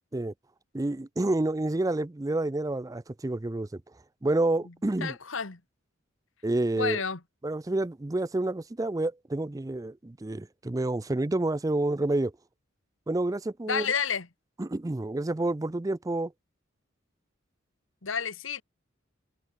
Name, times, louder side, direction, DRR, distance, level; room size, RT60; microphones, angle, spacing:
voice 1, 0.7-3.8 4.2-5.2 6.4-7.0 7.4-12.3 13.1-13.9 14.6-16.3, right 2 dB, 15° right, 0.4 m, -29 dB
voice 2, 5.0-5.6 6.8-7.2 13.7-14.3 18.0-18.6, left 6 dB, 80° left, 1.6 m, -30 dB
head